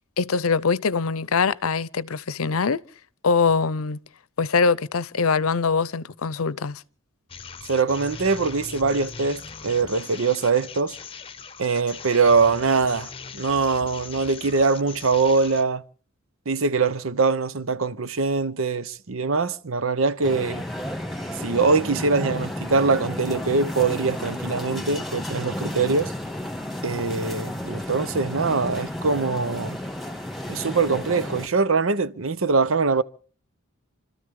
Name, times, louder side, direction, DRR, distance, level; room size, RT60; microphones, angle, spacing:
voice 1, 0.2-2.8 3.2-4.0 4.4-6.8, left 5 dB, 90° left, 0.7 m, -23 dB
sound 1, 7.3-15.6, left 5 dB, 25° left, 0.8 m, -40 dB
voice 2, 7.7-11.0 11.6-15.8 16.5-20.6 21.4-26.1 26.8-29.8 30.5-33.0, right 4 dB, 75° right, 0.9 m, -23 dB
sound 2, 20.2-31.5, left 1 dB, ahead, 2.0 m, -32 dB
29.0 x 13.5 x 3.6 m
head